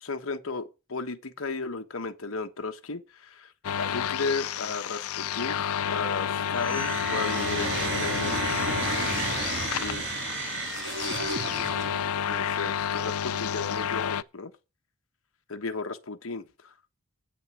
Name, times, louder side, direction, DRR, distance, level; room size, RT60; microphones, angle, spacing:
voice 1, 0.0-8.4 9.8-10.2 11.4-11.6 12.3-14.5 15.5-16.7, left 4 dB, 65° left, 1.2 m, -35 dB
sound 1, 3.6-14.2, left 8 dB, 85° left, 0.5 m, -30 dB
sound 2, 6.5-12.2, right 4 dB, 60° right, 1.8 m, -32 dB
8.7 x 6.6 x 8.1 m
head